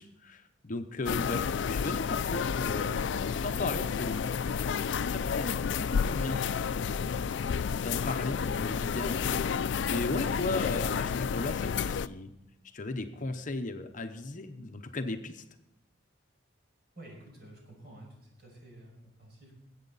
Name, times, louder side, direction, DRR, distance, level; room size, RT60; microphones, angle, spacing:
voice 1, 0.0-3.0 3.4-4.3 4.7-7.1 7.5-12.3 12.7-15.4, left 2 dB, 40° left, 6 dB, 0.8 m, -36 dB
sound 1, 1.0-12.1, left 6 dB, 65° left, 0.4 m, -31 dB
voice 2, 17.0-19.5, right 1 dB, 55° right, -1 dB, 5.6 m, -51 dB
20.0 x 8.3 x 4.0 m, 0.88 s
head